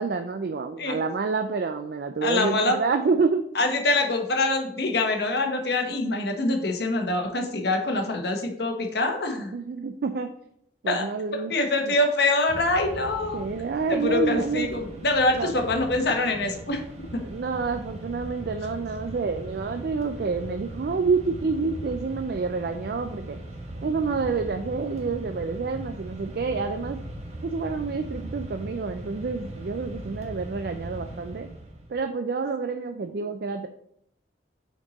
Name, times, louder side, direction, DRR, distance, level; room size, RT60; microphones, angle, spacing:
voice 1, 0.0-3.4 6.6-6.7 9.5-10.3 10.8-11.5 11.9-12.0 13.3-15.1 15.3-15.5 17.2-23.4 23.8-27.0 27.4-31.5 31.9-33.7, right 4 dB, 55° right, 7 dB, 0.4 m, -28 dB
voice 2, 2.2-2.8 3.5-9.5 10.9-11.0 11.5-13.4 13.9-16.8 17.1-17.2, left 2 dB, 65° left, 4 dB, 1.0 m, -24 dB
Mechanisms, 12.5-31.9, right 1 dB, 40° right, 1.1 m, -39 dB
5.8 x 4.4 x 4.0 m, 0.72 s
head